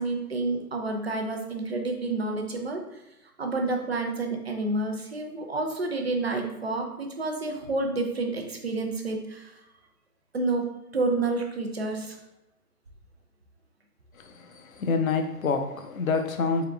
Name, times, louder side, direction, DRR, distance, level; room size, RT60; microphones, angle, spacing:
voice 1, 0.0-3.0 3.4-9.6 10.3-10.7 10.9-12.2, right 2 dB, 45° right, 3 dB, 0.5 m, -29 dB
voice 2, 14.2-16.6, left 4 dB, 60° left, 6 dB, 0.6 m, -27 dB
3.6 x 3.6 x 2.3 m, 0.91 s
hypercardioid pair, 165°, 47 cm